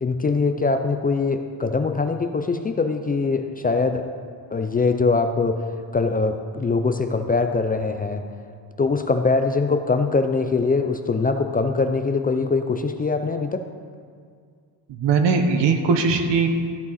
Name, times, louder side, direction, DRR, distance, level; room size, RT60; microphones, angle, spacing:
voice 1, 0.0-4.0 4.5-5.6 5.9-8.2 8.8-13.6, left 4 dB, 20° left, 6 dB, 0.4 m, -22 dB
voice 2, 14.9-16.5, right 5 dB, 80° right, 6 dB, 1.2 m, -20 dB
13.5 x 9.4 x 4.1 m, 2.1 s
cardioid pair, 155°, 42 cm